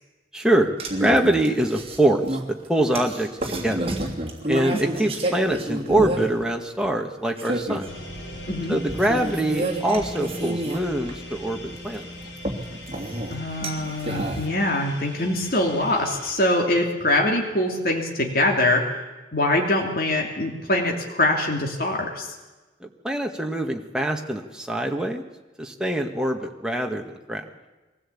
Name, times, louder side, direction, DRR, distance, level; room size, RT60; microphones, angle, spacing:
voice 1, 0.3-0.7 1.0-4.0 4.5-7.9 8.7-12.1 22.8-25.2 25.6-27.5, right 1 dB, 5° right, 2 dB, 1.6 m, -24 dB
sound 1, 0.8-6.5 6.8-6.9 7.4-7.9 8.9-11.3 11.6-14.4, right 1 dB, 30° right, 3.0 m, -29 dB
sound 2, 7.9-16.3, left 1 dB, 85° left, 6.1 m, -39 dB
voice 2, 13.3-19.0 19.3-22.3, left 1 dB, 50° left, 0 dB, 2.9 m, -23 dB
23.0 x 16.0 x 8.6 m, 1.2 s
head